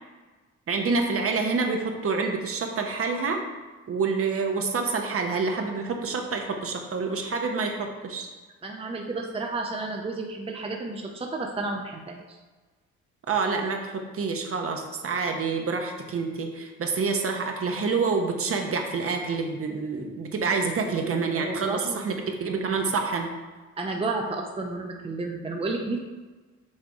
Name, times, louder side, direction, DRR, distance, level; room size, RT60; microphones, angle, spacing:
voice 1, 0.7-3.4 3.9-8.3 13.3-23.3, right 4 dB, 50° right, 3 dB, 1.0 m, -27 dB
voice 2, 8.6-12.4 21.0-22.1 23.8-26.0, right 3 dB, 20° right, 1 dB, 0.7 m, -32 dB
6.5 x 3.5 x 4.8 m, 1.3 s
cardioid pair, 90°, 30 cm